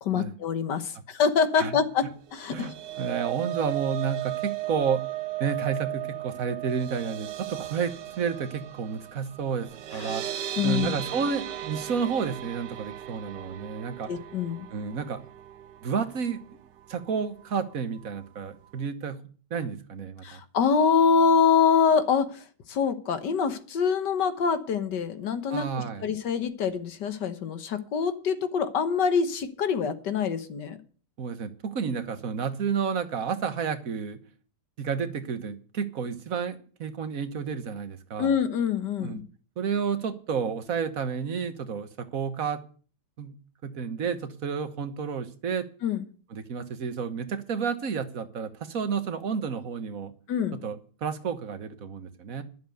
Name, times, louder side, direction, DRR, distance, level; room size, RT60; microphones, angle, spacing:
voice 1, 0.0-2.7 9.9-10.1 10.6-10.9 14.1-14.7 20.2-30.8 38.2-39.2 45.8-46.0 50.3-50.6, left 6 dB, 80° left, 11 dB, 1.8 m, -25 dB
sound 1, 2.3-16.6 16.9-17.1 17.4-17.6, right 14 dB, 80° right, 1.5 m, -36 dB
voice 2, 2.5-5.0 5.4-10.4 10.6-14.1 14.7-15.2 15.8-16.6 16.9-19.2 19.5-20.4 25.5-26.1 31.2-34.2 34.8-38.3 39.0-39.2 39.6-42.6 43.2-43.4 43.6-45.6 46.3-50.1 50.6-52.4, right 6 dB, 55° right, 10 dB, 1.6 m, -31 dB
11.5 x 7.7 x 9.1 m, 0.42 s
omnidirectional pair, 1.9 m